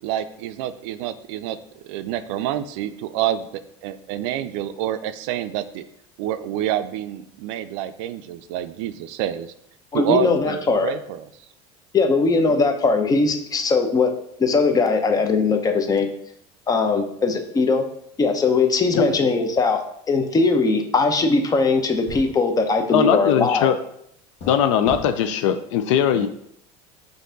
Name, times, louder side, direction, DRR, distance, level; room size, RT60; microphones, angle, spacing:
voice 1, 0.0-1.6 1.8-3.5 3.8-5.8 6.2-9.5 9.9-11.3 12.5-12.6 19.0-19.3 26.1-26.3, right 12 dB, 75° right, 12 dB, 0.4 m, -28 dB
voice 2, 9.9-10.9 11.9-14.1 14.4-16.1 16.7-17.8 18.2-19.8 20.1-23.7, left 4 dB, 25° left, 5 dB, 0.7 m, -20 dB
sound 1, 21.6-21.8 22.1-22.3 24.4-24.6 24.9-25.0, left 1 dB, 40° left, 1.1 m, -35 dB
voice 3, 22.9-23.7 24.5-26.3, left 9 dB, 85° left, 9 dB, 0.4 m, -20 dB
5.2 x 2.6 x 3.9 m, 0.71 s
supercardioid pair, 110°, 16 cm